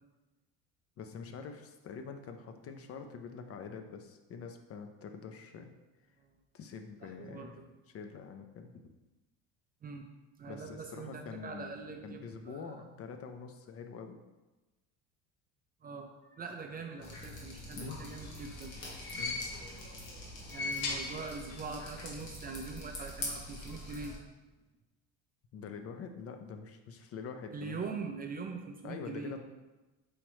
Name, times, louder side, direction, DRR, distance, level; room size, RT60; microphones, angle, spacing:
voice 1, 1.0-5.7 6.5-7.6 7.9-8.9 10.5-11.8 12.0-14.2 17.8-18.0 19.2-19.4 25.5-27.8 28.8-29.4, left 5 dB, 40° left, 6 dB, 0.4 m, -45 dB
voice 2, 7.2-7.6 9.8-10.1 10.4-12.8 15.8-18.8 20.5-24.1 27.5-29.4, right 4 dB, 25° right, 3 dB, 0.4 m, -43 dB
Drip, 17.0-24.2, left 1 dB, 90° left, 1.2 m, -45 dB
sound 1, 17.9-19.9 20.3-21.8 22.0-22.1 23.2-23.3, left 3 dB, 65° left, 0.9 m, -39 dB
4.8 x 3.0 x 3.0 m, 1.1 s
supercardioid pair, 80°, 39 cm